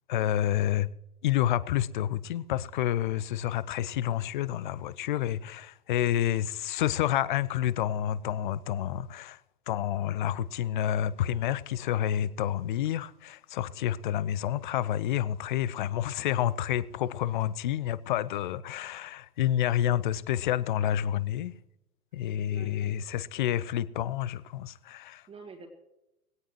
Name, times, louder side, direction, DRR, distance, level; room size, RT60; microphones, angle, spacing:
voice 1, 0.1-0.9 1.2-9.4 9.7-21.5 22.1-25.2, left 11 dB, 35° left, 0.5 m, -29 dB
voice 2, 22.2-23.0 25.3-25.7, right 4 dB, 10° right, 1.8 m, -50 dB
20.0 x 17.5 x 3.1 m
figure-of-eight pair, 105°, 45 cm